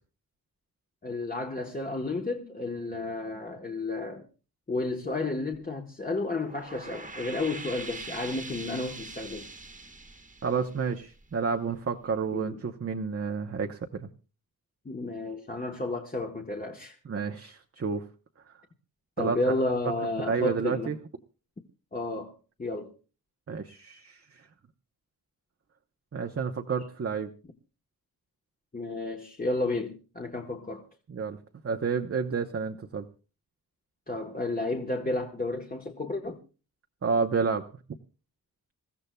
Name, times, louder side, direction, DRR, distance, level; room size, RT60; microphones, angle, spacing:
voice 1, 1.0-4.2 4.7-9.5 12.3-12.6 14.8-17.0 19.2-21.0 21.9-22.3 22.6-22.9 28.7-30.8 34.1-36.4, left 2 dB, 25° left, 1.2 m, -32 dB
sound 1, 6.3-11.5, right 3 dB, 20° right, 1.3 m, -43 dB
voice 2, 10.4-14.1 17.0-18.0 19.2-19.6 20.2-21.0 23.5-24.2 26.1-27.3 31.1-31.4 31.6-33.1 37.0-37.7, right 5 dB, 40° right, 0.8 m, -30 dB
27.0 x 15.0 x 2.2 m
wide cardioid pair, 175°, 37 cm